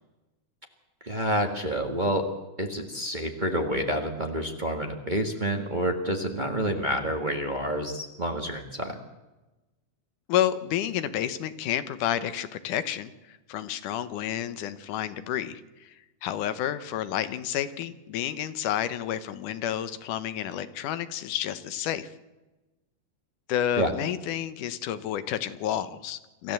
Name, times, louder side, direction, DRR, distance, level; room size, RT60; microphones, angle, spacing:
voice 1, 1.0-2.3 2.6-9.0 23.8-23.9, equal, 35° right, 4 dB, 0.7 m, -28 dB
voice 2, 10.3-16.0 16.2-22.1 23.5-26.5, left 11 dB, 80° left, 13 dB, 2.5 m, -30 dB
26.0 x 13.5 x 7.9 m, 1.1 s
omnidirectional pair, 3.7 m